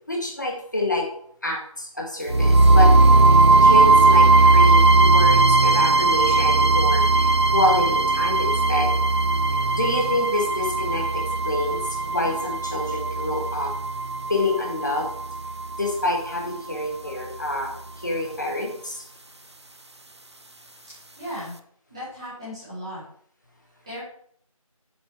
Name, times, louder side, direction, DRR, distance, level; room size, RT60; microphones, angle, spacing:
voice 1, 0.1-1.1 1.4-2.9 3.6-8.9 9.7-13.8 14.3-15.1 15.8-17.8 18.0-19.0, left 1 dB, 30° left, 0 dB, 1.9 m, -27 dB
sound 1, 2.3-16.3, right 2 dB, 50° right, 0.7 m, -18 dB
voice 2, 21.2-21.5 21.9-23.0 23.9-24.0, equal, 10° right, -13 dB, 2.8 m, -35 dB
7.7 x 7.1 x 4.7 m, 0.64 s
figure-of-eight pair, 175°, 18 cm